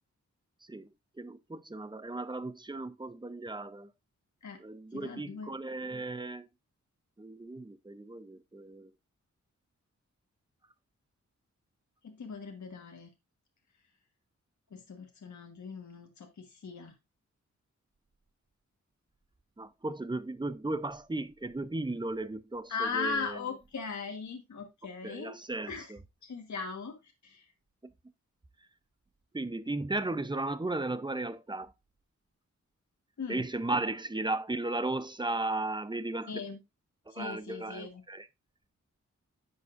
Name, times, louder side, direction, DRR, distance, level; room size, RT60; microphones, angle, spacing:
voice 1, 1.2-3.9 4.6-6.5 7.2-8.9 19.6-23.4 25.0-26.0 27.8-27.9 29.3-31.7 33.3-36.3 37.1-38.3, right 2 dB, 15° right, 0.6 m, -35 dB
voice 2, 4.9-5.5 12.0-13.1 14.7-16.9 22.7-25.3 25.7-25.9 26.2-27.5 33.2-33.4 36.3-36.6 37.1-38.0, left 5 dB, 70° left, 1.5 m, -39 dB
10.5 x 7.1 x 2.5 m
wide cardioid pair, 115°, 29 cm